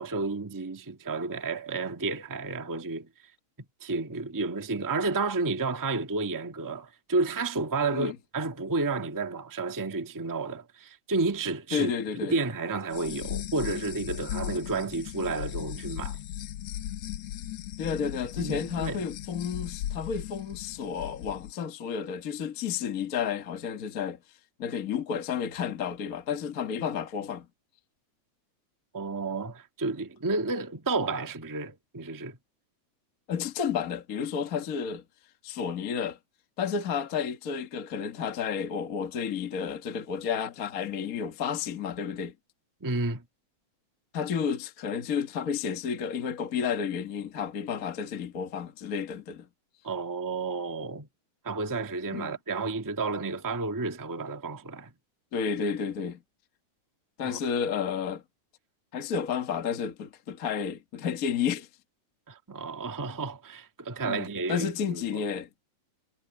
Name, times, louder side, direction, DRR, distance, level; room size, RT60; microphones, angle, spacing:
voice 1, 0.0-3.1 3.8-11.9 12.2-16.2 18.4-19.0 28.9-32.4 42.8-43.2 49.8-51.1 51.4-54.9 57.2-57.4 62.3-65.2, right 3 dB, 15° right, 0.6 m, -31 dB
voice 2, 11.7-12.4 17.8-24.2 24.6-27.5 33.3-35.0 35.4-36.2 36.6-42.3 44.1-49.5 52.1-52.3 55.3-56.2 57.2-58.2 58.9-61.7 64.0-65.6, left 7 dB, 40° left, 1.4 m, -31 dB
sound 1, 12.9-21.5, left 12 dB, 70° left, 1.7 m, -37 dB
omnidirectional pair, 3.4 m